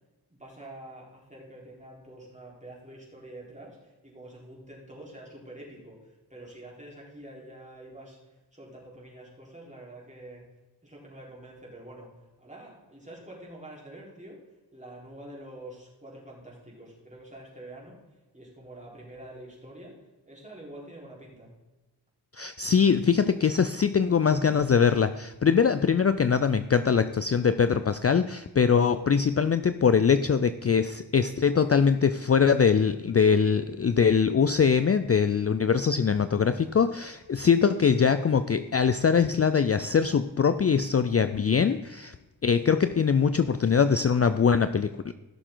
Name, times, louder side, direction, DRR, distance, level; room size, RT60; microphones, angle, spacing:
voice 1, 0.3-10.5 10.8-14.4 14.7-18.0 18.3-21.5, right 1 dB, 15° right, -4 dB, 4.0 m, -46 dB
voice 2, 22.3-42.1 42.4-45.1, left 6 dB, 40° left, 12 dB, 0.4 m, -22 dB
16.5 x 6.6 x 3.9 m, 1.1 s
wide cardioid pair, 75°, 40 cm